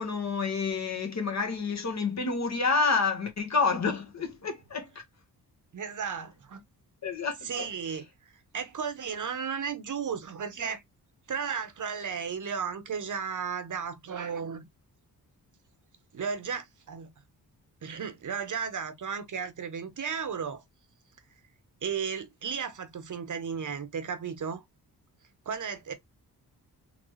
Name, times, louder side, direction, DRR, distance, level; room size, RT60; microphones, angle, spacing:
voice 1, 0.0-4.9 7.0-7.7, left 4 dB, 45° left, 1.4 m, -29 dB
voice 2, 5.7-6.6 7.4-8.1 8.5-10.8 11.3-14.7 16.1-17.1 17.8-20.6 21.8-24.6 25.4-25.9, right 6 dB, 50° right, 1.0 m, -34 dB
4.0 x 3.3 x 3.2 m
wide cardioid pair, 150°, 38 cm